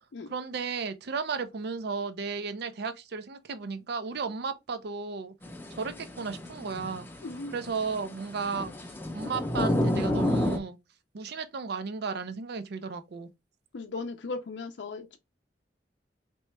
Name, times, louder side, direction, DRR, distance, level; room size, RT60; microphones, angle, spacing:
voice 1, 0.3-5.3 5.7-7.1 7.5-10.8 11.1-13.3, right 5 dB, 65° right, 0.5 m, -34 dB
sound 1, 5.4-10.6, left 1 dB, 10° left, 0.6 m, -31 dB
voice 2, 7.2-7.5 13.7-15.2, left 3 dB, 70° left, 0.5 m, -37 dB
3.2 x 3.0 x 3.1 m
head